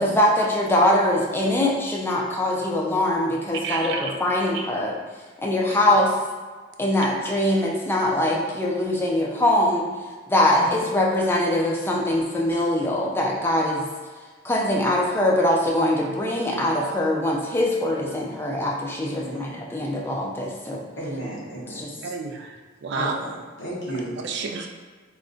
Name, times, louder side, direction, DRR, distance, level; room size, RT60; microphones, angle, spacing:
voice 1, 0.0-5.0 5.4-6.1 6.8-9.9 10.3-13.8 14.4-20.8 21.7-21.9, left 1 dB, 10° left, -2 dB, 0.4 m, -22 dB
voice 2, 3.6-4.1 4.5-4.7 22.0-23.1 24.2-24.7, right 5 dB, 65° right, 3 dB, 0.4 m, -30 dB
voice 3, 10.5-10.9 19.0-19.5 21.0-21.8 22.9-24.2, right 1 dB, 65° left, -6 dB, 0.8 m, -33 dB
2.5 x 2.2 x 3.7 m, 1.4 s
head